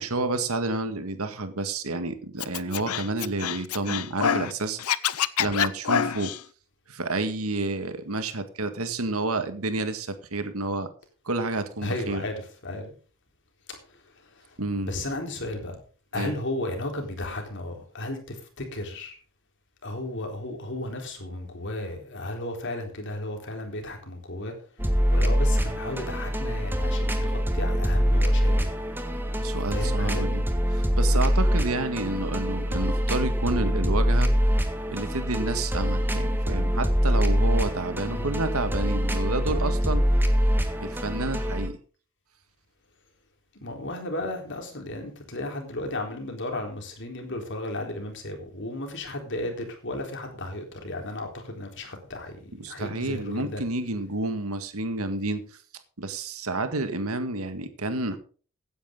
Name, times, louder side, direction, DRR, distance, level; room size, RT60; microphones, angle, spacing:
voice 1, 0.0-4.8 5.4-6.3 6.9-10.9 11.3-12.2 14.6-14.9 16.2-16.3 29.4-30.4 30.7-34.3 34.9-40.0 40.8-41.8 52.6-55.6 56.0-58.2, right 2 dB, 85° right, 9 dB, 1.8 m, -30 dB
Scratching (performance technique), 2.4-4.5 4.8-6.4, left 8 dB, 90° left, 0.7 m, -26 dB
voice 2, 11.8-12.9 13.7-14.6 14.8-15.8 16.1-19.2 19.8-24.5 25.1-28.7 29.7-30.3 38.1-38.4 43.6-53.6, left 1 dB, 55° left, 3 dB, 3.9 m, -34 dB
sound 1, 24.8-41.7, equal, 10° right, 1.7 m, -24 dB
16.0 x 10.0 x 3.8 m, 0.39 s
head